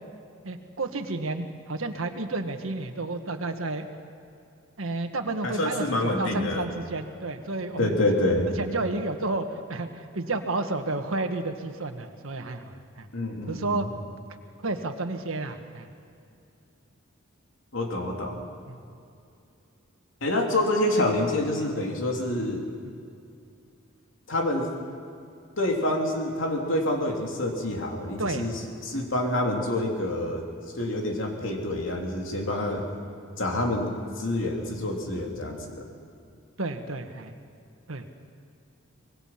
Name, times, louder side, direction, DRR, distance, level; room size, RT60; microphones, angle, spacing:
voice 1, 0.4-3.9 4.8-8.0 8.6-13.1 13.5-13.9 14.6-15.9 18.7-18.8 22.8-22.9 28.2-28.5 28.9-29.1 36.6-37.3 37.9-38.1, right 2 dB, 85° right, 6 dB, 1.6 m, -31 dB
voice 2, 5.4-6.7 7.8-8.5 13.1-13.9 17.7-18.4 20.2-22.6 24.3-24.7 25.6-30.4 30.7-32.8 33.4-35.9, left 1 dB, 70° left, 1 dB, 3.2 m, -27 dB
25.0 x 20.5 x 5.9 m, 2.5 s
head